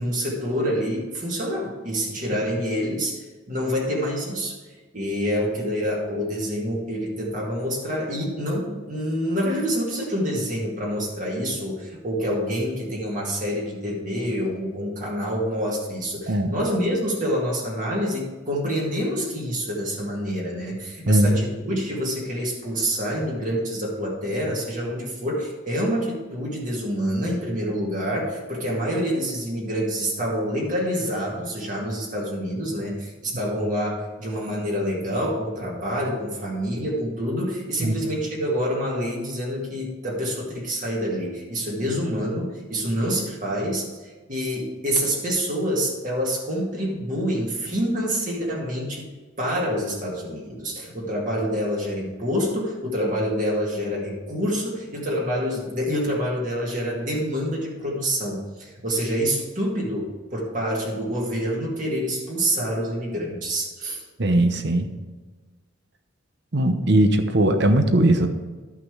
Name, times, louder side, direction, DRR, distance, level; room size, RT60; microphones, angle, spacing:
voice 1, 0.0-4.6 4.9-49.1 49.4-64.0, equal, 40° right, -3 dB, 1.9 m, -27 dB
voice 2, 64.2-64.9 66.5-68.3, right 1 dB, 55° right, 7 dB, 0.9 m, -19 dB
12.5 x 5.8 x 4.7 m, 1.3 s
head